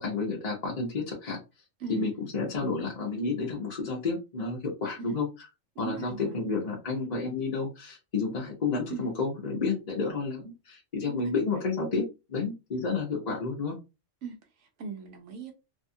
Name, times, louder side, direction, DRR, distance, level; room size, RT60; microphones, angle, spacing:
voice 1, 0.0-1.4 1.9-5.3 5.8-12.0 12.3-13.8, left 4 dB, 40° left, 0.8 m, -30 dB
voice 2, 5.8-6.3 8.9-9.1 11.0-11.3 14.2-15.5, right 5 dB, 75° right, 0.9 m, -39 dB
2.7 x 2.3 x 2.6 m
omnidirectional pair, 1.3 m